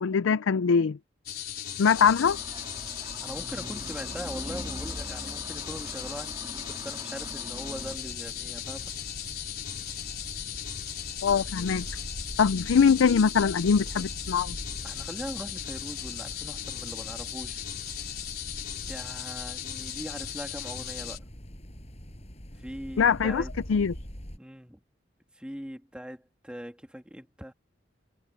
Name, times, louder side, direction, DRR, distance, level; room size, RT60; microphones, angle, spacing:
voice 1, 0.0-1.0 1.8-2.4 11.2-11.9 12.4-14.6 23.0-23.4 23.7-23.9, left 6 dB, 85° left, 0.4 m, -22 dB
sound 1, 1.3-21.2, left 10 dB, 50° left, 3.9 m, -37 dB
sound 2, 1.9-8.0, right 1 dB, 20° right, 2.5 m, -42 dB
voice 2, 3.2-8.9 14.8-17.6 18.9-21.2 22.6-23.5 24.4-24.8 25.3-27.5, equal, 5° right, 2.2 m, -41 dB
sound 3, 7.6-24.4, equal, 35° left, 7.2 m, -43 dB
head